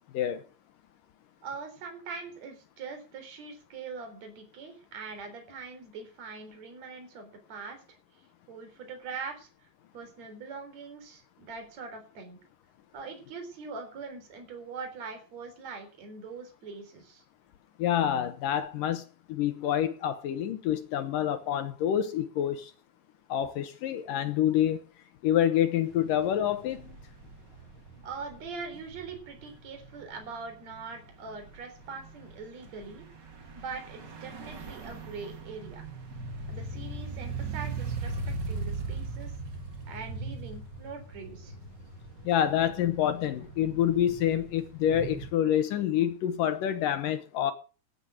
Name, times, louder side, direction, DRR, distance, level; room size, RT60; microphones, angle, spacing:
voice 1, 1.4-8.0 8.5-9.5 9.9-12.4 12.9-17.2 28.0-33.1 33.5-35.8 36.5-38.1 38.5-39.3 39.9-41.5, right 4 dB, 40° right, 4.6 m, -42 dB
voice 2, 17.8-22.7 23.3-24.8 25.2-27.0 42.2-47.5, left 10 dB, 70° left, 2.1 m, -27 dB
sound 1, 25.8-45.3, right 3 dB, 85° right, 0.9 m, -40 dB
14.5 x 9.8 x 6.3 m
omnidirectional pair, 5.1 m